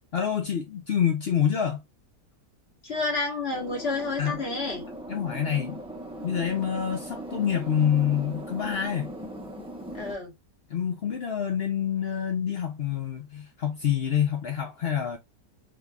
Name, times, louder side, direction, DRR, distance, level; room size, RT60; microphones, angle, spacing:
voice 1, 0.1-1.8 4.2-4.4 5.1-5.8 6.2-9.1 10.7-15.2, left 8 dB, 75° left, 0.5 m, -27 dB
voice 2, 2.8-4.9 9.9-10.3, left 3 dB, 40° left, 1.4 m, -30 dB
sound 1, 3.5-10.1, right 1 dB, 5° right, 0.5 m, -39 dB
3.6 x 2.9 x 2.3 m
omnidirectional pair, 1.8 m